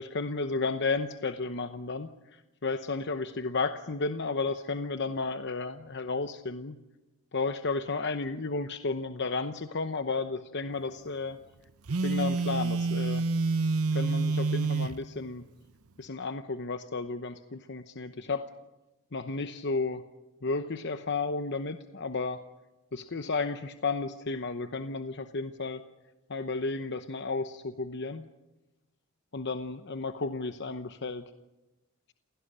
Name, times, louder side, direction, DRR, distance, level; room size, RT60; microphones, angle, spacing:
voice 1, 0.0-6.8 7.3-11.4 12.0-13.3 13.9-15.4 16.0-18.5 19.1-20.0 20.4-22.4 22.9-25.8 26.3-28.3 29.3-31.2, left 3 dB, 50° left, 9 dB, 0.9 m, -33 dB
Telephone, 11.9-15.0, right 3 dB, 80° right, 0.8 m, -28 dB
28.0 x 17.0 x 9.9 m, 1.0 s
head